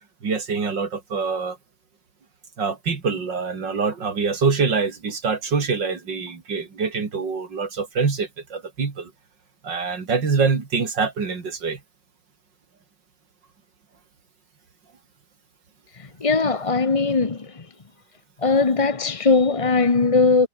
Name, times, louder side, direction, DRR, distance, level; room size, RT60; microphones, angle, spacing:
voice 1, 0.2-1.6 2.6-9.1 9.6-11.8, right 5 dB, 90° right, 3.6 m, -25 dB
voice 2, 15.9-17.7 18.4-20.5, left 4 dB, 25° left, 0.8 m, -20 dB
omnidirectional pair, 1.9 m